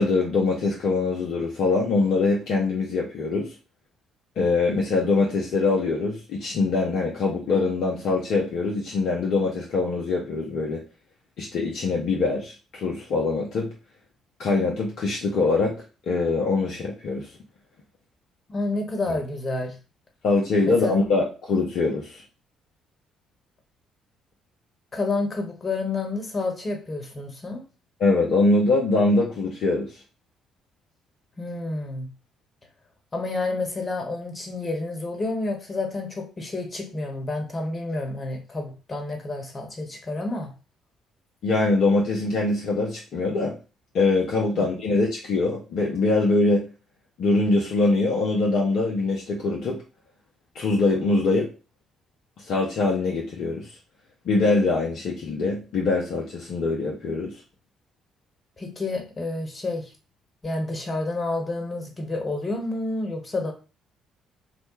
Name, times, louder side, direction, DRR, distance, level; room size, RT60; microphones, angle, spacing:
voice 1, 0.0-3.5 4.4-10.8 11.4-13.7 14.4-15.8 16.1-17.3 20.2-22.2 28.0-29.9 41.4-43.6 43.9-46.7 47.2-49.8 50.5-51.5 52.4-53.7 54.3-57.4, left 3 dB, 55° left, -2 dB, 0.5 m, -23 dB
voice 2, 18.5-19.7 20.6-20.9 24.9-27.6 31.4-32.1 33.1-40.5 44.5-44.7 58.6-59.9 60.4-63.5, left 2 dB, 30° left, 2 dB, 1.0 m, -29 dB
3.1 x 2.2 x 3.0 m, 0.32 s
figure-of-eight pair, 45°, 0 cm